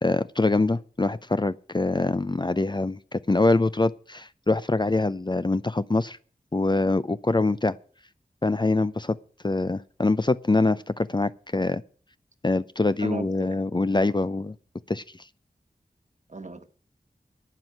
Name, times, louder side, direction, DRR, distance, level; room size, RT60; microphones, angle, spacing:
voice 1, 0.0-6.2 6.5-7.8 8.4-9.2 9.4-11.8 12.4-14.5 14.9-15.0, left 2 dB, 25° left, 0.5 m, -24 dB
voice 2, 13.0-14.1 16.3-16.7, right 3 dB, 45° right, 1.5 m, -37 dB
11.5 x 8.0 x 9.1 m
wide cardioid pair, 55°, 17 cm